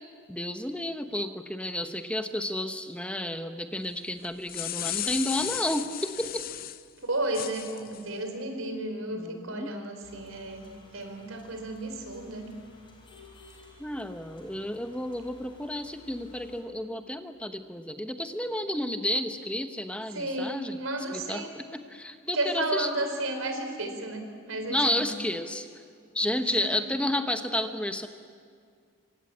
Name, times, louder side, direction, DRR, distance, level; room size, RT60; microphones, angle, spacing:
voice 1, 0.3-6.4 9.1-9.7 13.8-20.8 21.1-22.9 24.7-25.7 26.1-28.1, left 1 dB, 5° left, 7 dB, 1.0 m, -31 dB
sound 1, 4.2-6.8 7.3-8.0, left 13 dB, 45° left, 0.6 m, -34 dB
voice 2, 7.0-12.5 20.1-21.5 22.3-25.1 26.4-26.9, right 1 dB, 80° right, 6 dB, 4.4 m, -33 dB
sound 2, 10.0-16.6, left 2 dB, 25° left, 4.5 m, -54 dB
26.0 x 25.0 x 8.6 m, 2.2 s
head